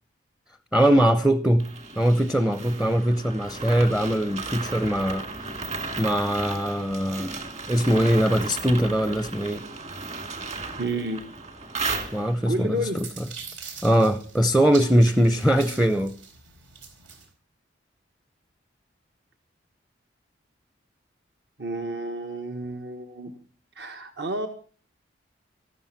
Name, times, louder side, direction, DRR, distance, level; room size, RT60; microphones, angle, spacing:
voice 1, 0.7-1.7 2.0-5.3 6.0-9.6 12.1-13.1 13.8-16.1, equal, 5° right, 0.6 m, -21 dB
sound 1, 1.6-12.6, right 4 dB, 35° right, 2.1 m, -35 dB
voice 2, 10.8-11.3 12.5-13.0 21.6-23.4 23.8-24.5, right 1 dB, 60° right, 1.4 m, -30 dB
sound 2, 12.5-17.3, right 6 dB, 90° right, 4.3 m, -43 dB
14.0 x 13.0 x 5.8 m
head